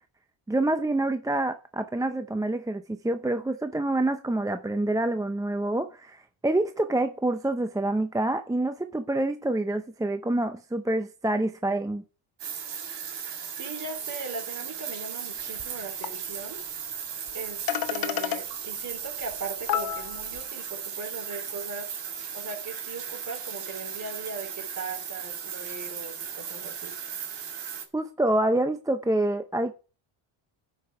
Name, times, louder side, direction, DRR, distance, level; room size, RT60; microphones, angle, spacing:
voice 1, 0.5-12.0 27.9-29.7, right 1 dB, 5° right, 0.5 m, -27 dB
sound 1, 12.4-27.8, right 7 dB, 55° right, 2.0 m, -36 dB
voice 2, 13.6-16.6 17.3-21.9 22.3-27.0, right 4 dB, 35° right, 3.8 m, -39 dB
sound 2, 15.6-15.7 16.0-16.1 17.3-17.4 17.7-18.4 19.3-19.4 19.7-20.4, left 10 dB, 45° left, 1.0 m, -29 dB
9.8 x 5.5 x 4.8 m
cardioid pair, 95°, 49 cm